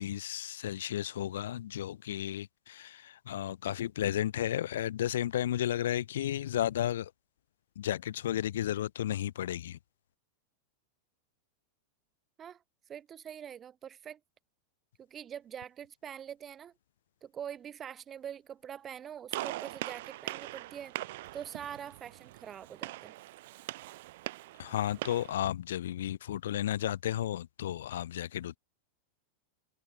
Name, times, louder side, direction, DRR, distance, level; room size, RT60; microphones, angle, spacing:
voice 1, 0.0-7.1 7.8-9.8 24.6-28.6, left 11 dB, 60° left, 2.9 m, -33 dB
voice 2, 12.9-14.2 15.0-16.7 17.2-21.0 21.3-23.1, right 9 dB, 25° right, 3.5 m, -44 dB
Gunshot gunfire, 19.3-25.3, right 18 dB, 55° right, 0.9 m, -41 dB
figure-of-eight pair, 90°, 0 cm